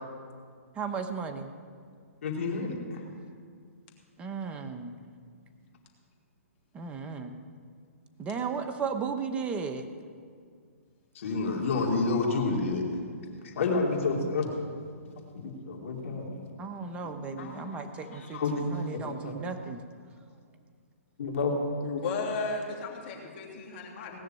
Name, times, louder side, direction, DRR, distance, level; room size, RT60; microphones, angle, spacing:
voice 1, 0.8-1.5 4.2-5.0 6.7-7.3 8.2-9.9 16.6-19.8, right 5 dB, 15° right, 6 dB, 0.9 m, -35 dB
voice 2, 2.2-3.0 11.1-12.8 13.4-14.6 15.3-16.4 17.0-18.6 18.9-19.4 21.2-21.6 24.1-24.2, left 3 dB, 60° left, 0 dB, 2.9 m, -30 dB
voice 3, 21.8-24.2, left 4 dB, 40° left, -1 dB, 3.0 m, -34 dB
18.5 x 6.6 x 9.1 m, 2.1 s
hypercardioid pair, 140°, 8 cm